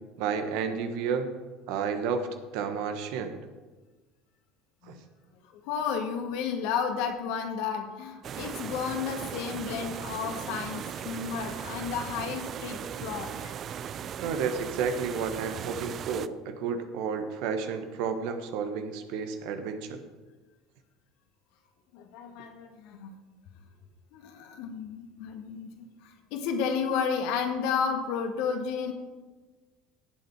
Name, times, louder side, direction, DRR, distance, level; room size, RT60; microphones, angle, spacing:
voice 1, 0.2-1.3 1.7-2.3 2.5-3.4 4.9-5.0 14.2-20.0, right 6 dB, 65° right, 7 dB, 1.4 m, -31 dB
voice 2, 5.7-13.5 21.9-23.1 24.1-25.7 26.3-28.9, left 6 dB, 65° left, 4 dB, 1.9 m, -32 dB
sound 1, 8.2-16.3, right 8 dB, 45° right, 0.5 m, -38 dB
17.0 x 7.8 x 4.8 m, 1.3 s
hypercardioid pair, 70°, 0 cm